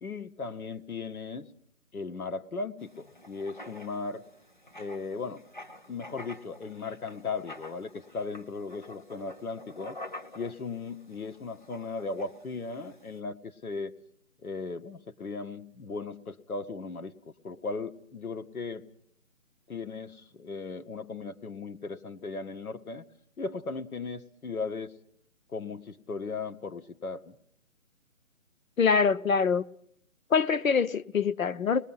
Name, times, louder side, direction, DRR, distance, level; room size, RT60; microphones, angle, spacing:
voice 1, 0.0-1.5 1.9-4.2 4.8-5.4 5.9-10.0 10.3-13.9 14.4-18.8 19.7-23.0 23.4-24.9 25.5-27.4, left 4 dB, 85° left, 1.5 m, -37 dB
Writing, 2.8-13.2, left 2 dB, 35° left, 0.8 m, -48 dB
voice 2, 28.8-29.6 30.3-31.9, left 5 dB, 65° left, 0.8 m, -24 dB
26.5 x 21.0 x 5.7 m
hypercardioid pair, 180°, 43 cm